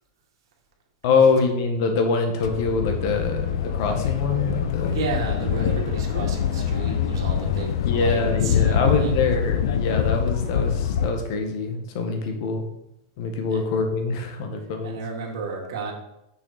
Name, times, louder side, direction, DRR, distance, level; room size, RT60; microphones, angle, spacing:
voice 1, 1.0-5.0 7.9-12.6 13.2-15.0, left 4 dB, 60° left, 5 dB, 1.4 m, -24 dB
sound 1, 2.4-11.1, left 8 dB, 80° left, 0.7 m, -24 dB
voice 2, 4.9-9.2 13.5-13.6 14.8-15.9, right 4 dB, 80° right, -1 dB, 2.1 m, -32 dB
6.4 x 6.2 x 4.2 m, 0.86 s
supercardioid pair, 155°, 2 cm